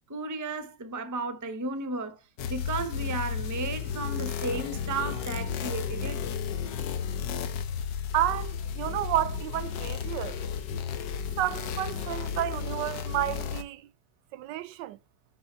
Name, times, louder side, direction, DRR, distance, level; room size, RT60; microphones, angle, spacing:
voice 1, 0.1-2.2 2.5-6.2, right 3 dB, 30° right, 0.3 m, -34 dB
sound 1, 2.4-13.6, left 7 dB, 90° left, 1.4 m, -33 dB
voice 2, 8.1-10.4 11.4-13.9 14.3-15.0, right 14 dB, 90° right, 1.3 m, -31 dB
6.2 x 5.5 x 4.3 m
omnidirectional pair, 1.9 m